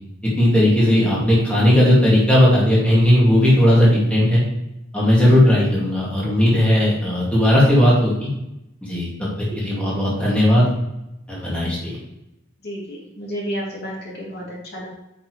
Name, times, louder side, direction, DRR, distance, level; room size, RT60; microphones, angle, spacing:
voice 1, 0.4-4.4 4.9-8.3 8.8-9.3 9.6-10.7 11.3-12.0, left 1 dB, 5° left, -7 dB, 2.3 m, -16 dB
voice 2, 12.6-14.9, equal, 55° left, -5 dB, 3.0 m, -32 dB
8.4 x 6.0 x 3.2 m, 0.89 s
head